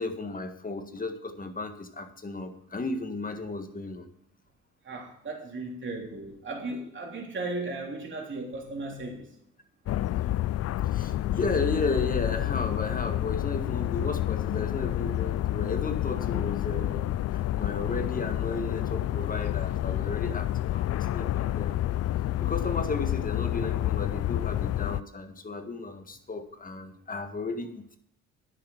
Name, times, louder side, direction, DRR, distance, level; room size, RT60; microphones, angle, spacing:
voice 1, 0.0-4.1 10.9-21.8 22.4-28.0, left 3 dB, 30° left, 1.8 m, -34 dB
voice 2, 4.8-9.3, right 2 dB, 40° right, 3.2 m, -36 dB
sound 1, 9.9-25.0, left 13 dB, 55° left, 0.4 m, -29 dB
10.0 x 7.2 x 7.2 m
cardioid pair, 90°, 30 cm